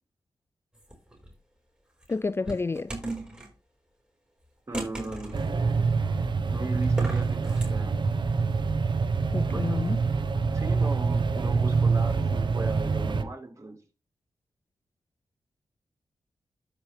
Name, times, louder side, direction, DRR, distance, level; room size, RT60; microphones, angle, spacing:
sound 1, 0.7-1.3 2.0-3.5 4.7-5.5 6.8-7.7, right 1 dB, 10° right, 4.6 m, -36 dB
voice 1, 2.1-3.0 9.3-10.0, left 3 dB, 25° left, 0.4 m, -29 dB
voice 2, 4.7-5.4 6.5-7.9 9.5-10.0 10.5-13.8, right 2 dB, 35° right, 4.4 m, -38 dB
sound 2, 5.3-13.2, right 4 dB, 55° right, 1.0 m, -25 dB
13.5 x 5.0 x 3.3 m
cardioid pair, 45°, 9 cm